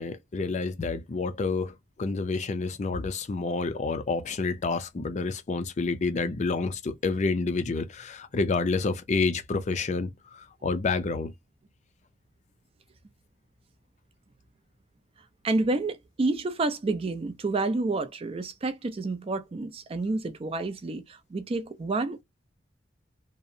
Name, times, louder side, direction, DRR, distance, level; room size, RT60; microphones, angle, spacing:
voice 1, 0.0-11.3, left 3 dB, 40° left, 0.4 m, -29 dB
voice 2, 15.4-22.2, right 3 dB, 30° right, 0.4 m, -29 dB
2.7 x 2.0 x 2.5 m
head